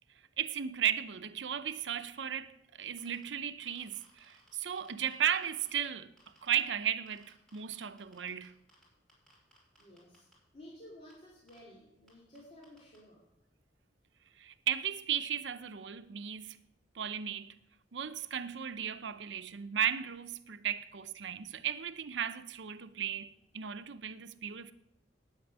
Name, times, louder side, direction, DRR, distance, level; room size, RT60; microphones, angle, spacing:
voice 1, 0.4-6.1 6.4-8.5 14.4-16.6 16.9-17.5 17.9-24.7, right 9 dB, 85° right, 0.6 m, -35 dB
sound 1, 2.9-3.2 3.6-5.9 6.2-6.6 7.1-8.8 9.1-10.3 11.1-11.2 11.5-11.6 12.1-12.2 12.4-12.5 12.6-13.0, right 1 dB, 5° left, 6.2 m, -63 dB
voice 2, 9.8-10.3 10.5-13.2, left 1 dB, 35° left, 2.9 m, -54 dB
9.5 x 8.9 x 9.4 m
head